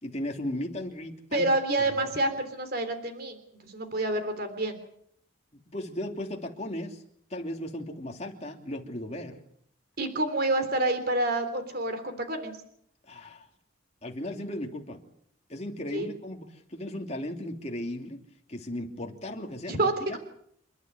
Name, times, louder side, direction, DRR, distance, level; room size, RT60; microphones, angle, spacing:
voice 1, 0.0-1.5 2.0-2.1 5.7-7.0 7.3-9.4 13.1-13.5 14.0-15.0 15.5-18.2 18.5-20.2, left 1 dB, 35° left, 2 dB, 3.0 m, -36 dB
voice 2, 1.3-3.4 3.6-4.8 10.0-12.5 15.9-16.1 19.7-20.2, right 2 dB, 50° right, 8 dB, 3.3 m, -28 dB
29.0 x 12.0 x 9.6 m, 0.69 s
head